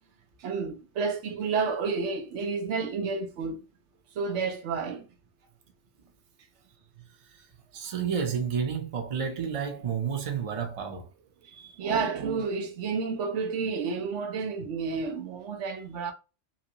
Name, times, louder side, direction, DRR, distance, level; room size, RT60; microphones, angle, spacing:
voice 1, 0.4-3.6 4.2-5.1 11.4-16.1, right 5 dB, 75° right, 1.0 m, -30 dB
voice 2, 7.7-11.1, right 7 dB, 35° right, 0.6 m, -30 dB
3.4 x 2.9 x 2.8 m
omnidirectional pair, 1.2 m